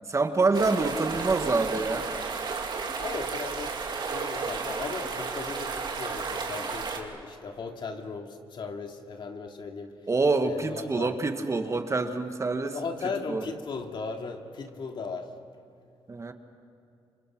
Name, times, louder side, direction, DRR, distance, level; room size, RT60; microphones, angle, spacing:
voice 1, 0.1-2.1 10.1-12.8 13.3-13.4 16.1-16.3, right 3 dB, 30° right, 7 dB, 1.7 m, -26 dB
sound 1, 0.5-7.0, right 4 dB, 55° right, 3.0 m, -33 dB
voice 2, 2.8-10.0 10.4-11.2 12.6-15.3, left 4 dB, 55° left, 3 dB, 2.6 m, -37 dB
28.0 x 25.5 x 6.2 m, 2.6 s
cardioid pair, 80°, 10 cm